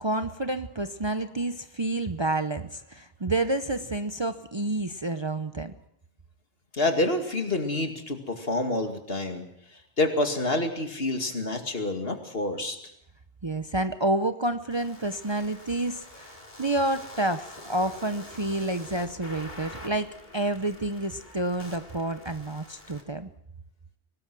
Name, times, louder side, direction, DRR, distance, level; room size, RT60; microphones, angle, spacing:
voice 1, 0.0-5.7 13.4-23.3, right 2 dB, 30° right, 9 dB, 0.8 m, -29 dB
voice 2, 6.7-9.4 10.0-12.8, left 2 dB, 60° left, 5 dB, 2.6 m, -27 dB
sound 1, 14.7-23.0, left 1 dB, 45° left, 3.2 m, -46 dB
24.0 x 19.0 x 6.2 m, 0.75 s
omnidirectional pair, 1.1 m